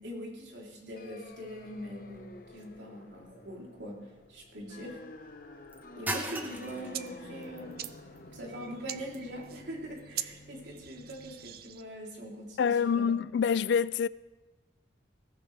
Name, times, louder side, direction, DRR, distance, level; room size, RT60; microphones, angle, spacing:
voice 1, 0.0-5.0 6.0-7.8 8.3-13.2, equal, 75° right, 3.4 m, -42 dB
sound 1, 1.0-11.5, left 2 dB, 50° left, 1.0 m, -50 dB
sound 2, 1.3-11.4, right 1 dB, 10° right, 1.0 m, -45 dB
sound 3, 6.2-11.8, right 12 dB, 55° right, 0.5 m, -44 dB
voice 2, 12.6-14.1, left 6 dB, 70° left, 0.3 m, -26 dB
19.5 x 15.0 x 3.4 m
head